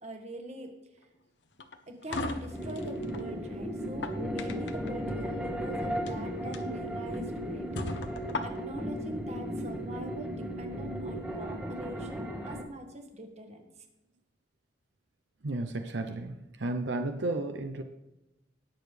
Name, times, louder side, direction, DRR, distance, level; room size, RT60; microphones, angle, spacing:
voice 1, 0.0-1.1 1.9-8.0 8.4-13.7, right 1 dB, 35° right, 4 dB, 1.5 m, -43 dB
sound 1, 1.6-3.3 3.8-4.9 5.9-6.1 6.5-6.6 7.1-7.2 7.8-8.9, left 2 dB, 75° left, 0.9 m, -37 dB
sound 2, 2.5-12.6, equal, 5° right, 1.1 m, -35 dB
voice 2, 15.4-16.3 16.6-17.8, right 2 dB, 75° right, 6 dB, 0.7 m, -32 dB
19.5 x 6.9 x 3.3 m, 0.99 s
head